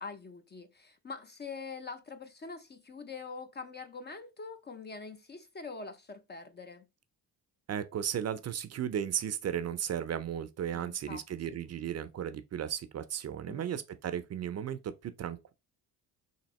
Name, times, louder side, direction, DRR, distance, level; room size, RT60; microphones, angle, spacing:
voice 1, 0.0-6.8 10.7-11.6 13.5-13.6, left 4 dB, 25° left, 0.4 m, -44 dB
voice 2, 7.7-15.5, right 9 dB, 40° right, 0.4 m, -35 dB
3.5 x 2.7 x 4.0 m
cardioid pair, 100°, 40 cm